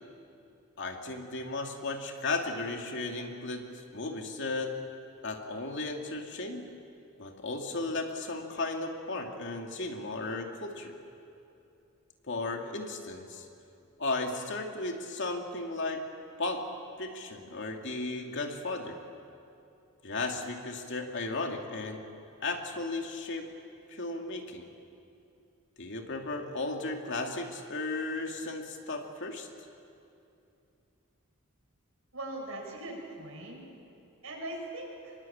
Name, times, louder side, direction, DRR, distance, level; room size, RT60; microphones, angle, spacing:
voice 1, 0.8-4.8 5.2-6.7 7.2-10.9 12.3-13.5 14.0-16.1 16.4-19.0 20.0-22.0 22.4-23.6 23.9-24.7 25.8-29.5, left 2 dB, 60° left, 3 dB, 2.5 m, -35 dB
voice 2, 32.1-33.6 34.2-35.2, right 1 dB, 75° right, -1 dB, 7.6 m, -40 dB
25.5 x 22.5 x 8.8 m, 2.7 s
head